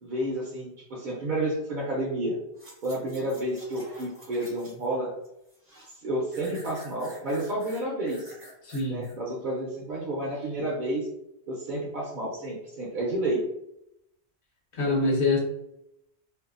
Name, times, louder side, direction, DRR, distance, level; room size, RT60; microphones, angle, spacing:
voice 1, 0.0-2.4 2.8-5.1 5.8-8.2 8.9-11.1 11.5-13.4, right 1 dB, 55° right, -4 dB, 0.6 m, -30 dB
sound 1, 2.5-4.9 5.2-6.0 6.3-9.2 9.6-9.7, equal, 15° right, 0.6 m, -49 dB
voice 2, 8.6-9.1 14.7-15.4, left 3 dB, 55° left, -4 dB, 1.1 m, -25 dB
2.6 x 2.3 x 2.4 m, 0.84 s
omnidirectional pair, 1.1 m